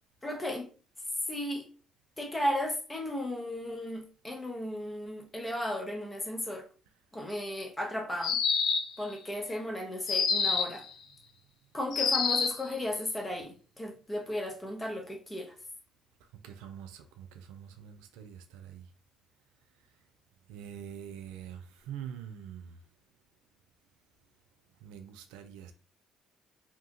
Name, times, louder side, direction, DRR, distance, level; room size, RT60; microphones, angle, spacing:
voice 1, 0.2-0.7 1.3-1.7 2.2-6.7 7.1-8.4 9.0-10.8 11.7-15.5, left 1 dB, 20° left, 0.9 m, -35 dB
sound 1, 8.2-9.0 10.1-10.8 11.9-12.6, left 5 dB, 60° left, 0.4 m, -27 dB
voice 2, 16.4-18.9 20.5-22.8 24.8-25.7, right 9 dB, 75° right, 0.3 m, -45 dB
2.8 x 2.3 x 2.5 m
hypercardioid pair, 50°, 0 cm